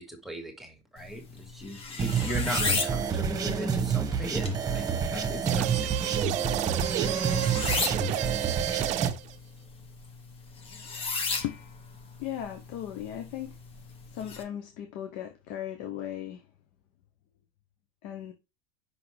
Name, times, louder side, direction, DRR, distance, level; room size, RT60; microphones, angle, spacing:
voice 1, 0.0-6.2, equal, ahead, 1.9 m, -38 dB
sound 1, 1.0-14.4, left 4 dB, 35° left, 1.6 m, -36 dB
sound 2, 2.0-9.1, right 6 dB, 25° right, 1.4 m, -29 dB
sound 3, 5.5-9.4, right 14 dB, 50° right, 0.5 m, -31 dB
voice 2, 12.2-13.5 14.1-16.4 18.0-18.3, left 11 dB, 60° left, 1.0 m, -37 dB
5.8 x 5.8 x 3.3 m
supercardioid pair, 105°, 16 cm